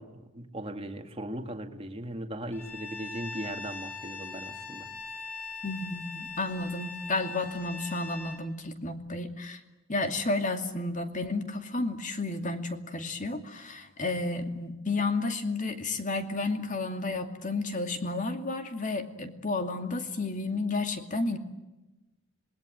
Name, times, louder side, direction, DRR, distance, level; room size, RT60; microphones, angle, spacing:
voice 1, 0.0-4.9, right 1 dB, 25° right, 6 dB, 2.1 m, -38 dB
Bowed string instrument, 2.5-8.4, left 4 dB, 10° left, 5.3 m, -41 dB
voice 2, 5.6-9.6 9.9-21.4, left 2 dB, 35° left, 6 dB, 2.4 m, -32 dB
26.5 x 21.0 x 9.2 m, 1.0 s
head